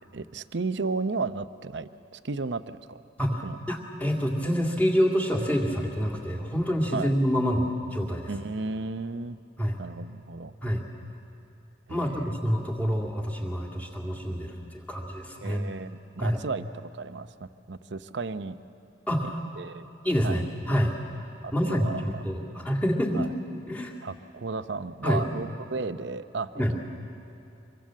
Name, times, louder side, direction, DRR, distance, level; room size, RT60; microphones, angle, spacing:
voice 1, 0.1-3.0 3.4-3.6 6.9-7.1 8.3-9.4 9.8-10.5 11.9-12.3 15.4-18.6 19.6-19.9 20.2-20.4 21.4-22.0 23.1-23.3 24.0-26.6, right 3 dB, 65° right, 12 dB, 0.7 m, -34 dB
voice 2, 3.2-8.3 9.6-9.8 10.6-10.8 11.9-15.7 16.2-16.4 19.1-19.4 20.0-20.9 21.5-23.3 23.7-23.9 25.0-25.2 26.6-26.7, equal, 5° left, -1 dB, 2.2 m, -27 dB
25.0 x 23.0 x 7.5 m, 2.9 s
head